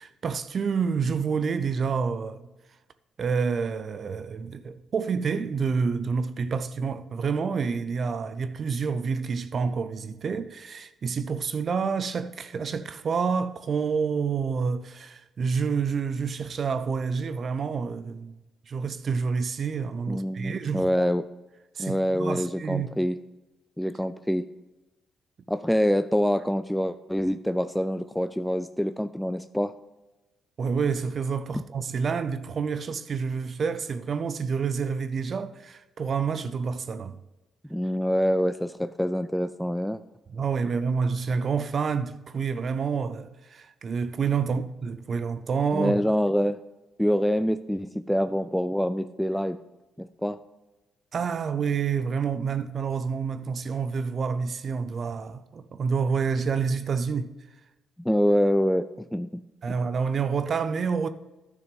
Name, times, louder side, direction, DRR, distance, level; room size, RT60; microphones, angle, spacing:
voice 1, 0.0-2.4 3.2-18.3 18.7-21.1 21.8-22.9 30.6-37.2 40.3-45.9 51.1-57.3 59.6-61.1, right 5 dB, 50° right, 0.5 m, -28 dB
voice 2, 20.1-21.2 21.8-23.2 23.8-24.5 25.5-29.7 37.7-40.0 45.7-46.6 47.0-49.6 50.0-50.4 58.0-59.4, equal, 5° left, 0.3 m, -25 dB
11.0 x 6.2 x 5.2 m
cardioid pair, 90°, 0 cm